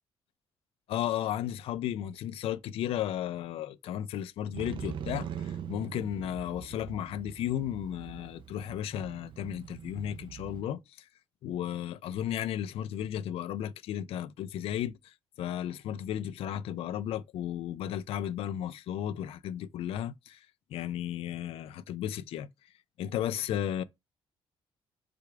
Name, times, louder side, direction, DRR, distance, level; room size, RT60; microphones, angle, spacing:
voice 1, 0.9-11.1 11.4-20.5 20.7-22.5 23.0-23.8, left 11 dB, 80° left, 0.4 m, -34 dB
Motorcycle, 4.5-10.6, right 8 dB, 60° right, 0.4 m, -42 dB
5.0 x 2.3 x 4.6 m
cardioid pair, 110°, 10 cm